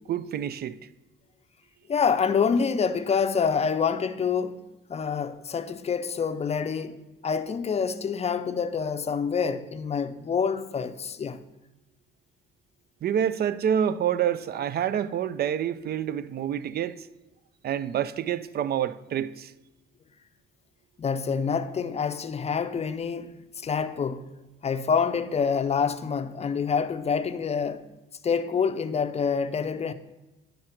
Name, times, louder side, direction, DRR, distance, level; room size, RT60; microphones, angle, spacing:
voice 1, 0.1-0.8 13.0-17.1 17.6-19.5, right 9 dB, 55° right, 0.4 m, -27 dB
voice 2, 1.9-4.6 4.9-11.4 21.0-23.3 23.6-24.3 24.6-27.9 28.2-29.9, left 6 dB, 30° left, 0.5 m, -27 dB
10.0 x 3.9 x 5.8 m
cardioid pair, 90°, 20 cm